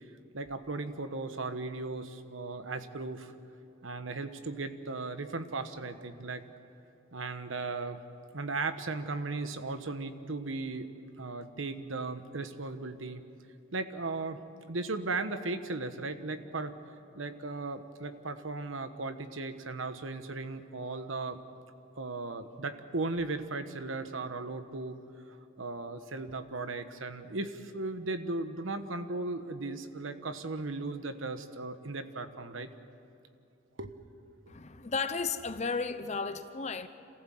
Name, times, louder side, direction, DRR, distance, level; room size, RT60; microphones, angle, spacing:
voice 1, 0.3-3.3 3.8-6.4 7.1-8.0 8.3-10.9 11.2-13.2 13.7-14.4 14.7-16.7 17.1-21.4 22.0-25.0 25.6-32.7 33.8-33.9, right 3 dB, 85° right, 9 dB, 1.2 m, -36 dB
voice 2, 34.5-36.9, left 4 dB, 35° left, 10 dB, 0.8 m, -34 dB
28.0 x 15.0 x 7.7 m, 2.8 s
head